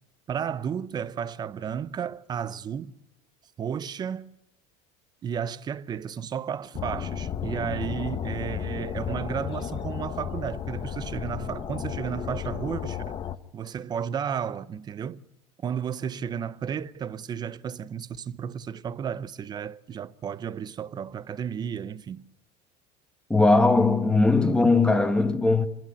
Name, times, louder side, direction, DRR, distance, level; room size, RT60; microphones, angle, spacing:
voice 1, 0.3-2.9 3.6-4.3 5.2-13.0 13.5-15.2 15.6-22.2, right 8 dB, 25° right, 0.7 m, -33 dB
sound 1, 6.7-13.4, left 8 dB, 35° left, 1.0 m, -33 dB
voice 2, 23.3-25.7, left 3 dB, 5° left, 1.5 m, -20 dB
26.5 x 11.5 x 9.8 m
supercardioid pair, 135°, 15 cm